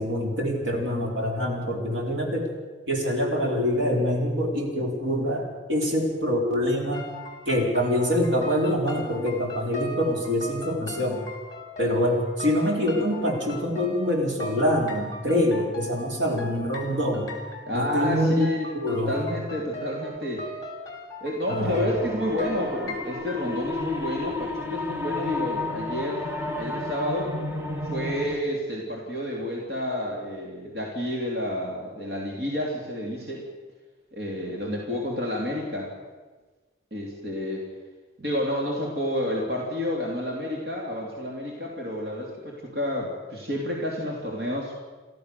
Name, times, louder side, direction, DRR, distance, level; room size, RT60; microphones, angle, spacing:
voice 1, 0.0-2.5 2.9-7.0 7.4-11.2 11.8-17.3 17.7-18.5 18.7-19.1 21.5-21.8, equal, 80° right, 0 dB, 4.9 m, -25 dB
sound 1, 6.9-23.4, equal, 20° left, 3.5 m, -39 dB
voice 2, 17.7-20.4 21.2-26.3 26.6-27.3 27.9-33.4 34.1-35.9 36.9-37.6 38.2-44.7, left 1 dB, 55° right, -1 dB, 3.2 m, -30 dB
sound 2, 21.6-28.4, left 2 dB, 10° right, 1.5 m, -32 dB
29.0 x 13.0 x 6.8 m, 1.3 s
head